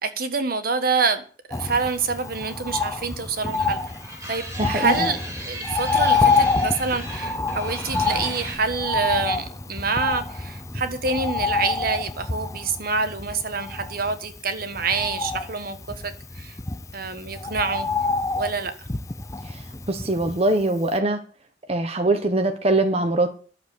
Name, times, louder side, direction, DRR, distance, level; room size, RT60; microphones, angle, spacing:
voice 1, 0.0-1.2 1.5-3.8 4.3-16.6 16.9-17.9 18.3-18.7, right 4 dB, 55° right, 9 dB, 1.4 m, -27 dB
Bird, 1.5-20.6 20.9-21.0, left 4 dB, 15° left, 0.6 m, -27 dB
sound 1, 3.5-8.6, right 1 dB, 15° right, 4.2 m, -37 dB
voice 2, 4.6-5.1 19.5-19.6 19.9-21.2 21.7-23.3, right 2 dB, 35° right, 6 dB, 1.1 m, -22 dB
11.5 x 7.3 x 8.5 m, 0.41 s
head